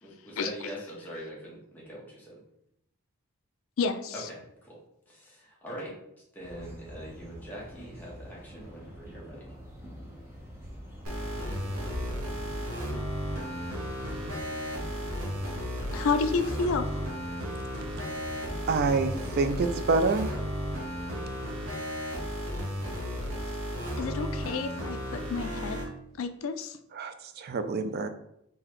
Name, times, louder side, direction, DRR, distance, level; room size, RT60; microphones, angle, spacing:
voice 1, 0.0-2.4 4.1-4.3 4.6-4.8 5.1-5.9 6.3-9.5, equal, 10° left, -5 dB, 1.1 m, -43 dB
voice 2, 3.8-4.1 14.9-15.0 15.9-17.1 24.0-25.8 26.2-26.8, left 4 dB, 65° left, 8 dB, 0.4 m, -30 dB
sound 1, 6.4-21.4, equal, 10° right, 0.8 m, -45 dB
sound 2, 11.0-25.9, equal, 70° right, 0.8 m, -34 dB
voice 3, 18.7-19.1 19.4-20.4 26.9-28.1, right 4 dB, 45° right, 9 dB, 0.3 m, -27 dB
3.9 x 2.8 x 3.0 m, 0.78 s
head